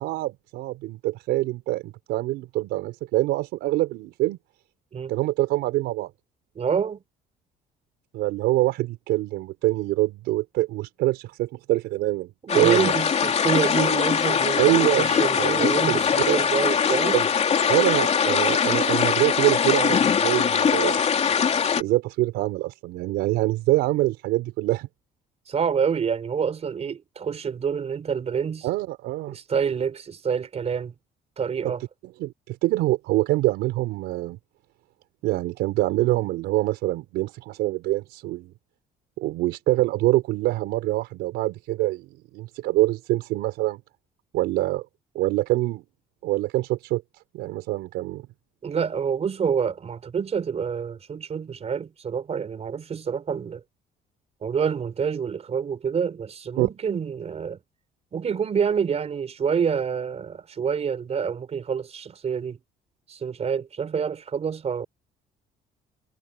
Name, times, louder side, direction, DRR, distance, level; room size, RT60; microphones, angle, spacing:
voice 1, 0.0-4.4 5.1-6.1 8.1-12.9 14.6-15.1 15.4-16.0 16.3-16.4 17.1-17.3 17.7-21.0 21.8-24.9 28.6-29.4 31.6-31.7 32.2-34.4 35.2-38.5 39.2-42.1 42.3-43.8 44.3-44.9 45.1-45.8 46.2-47.0 47.3-48.3 56.6-56.7, right 17 dB, 90° right, 4.6 m, -25 dB
voice 2, 6.6-7.0 12.4-17.1 25.5-28.7 29.3-30.9 31.4-31.8 48.6-53.6 54.4-57.6 58.1-62.6 63.1-64.9, right 7 dB, 40° right, 4.1 m, -27 dB
sound 1, 12.5-21.8, left 7 dB, 40° left, 3.1 m, -22 dB
cardioid pair, 110°, 17 cm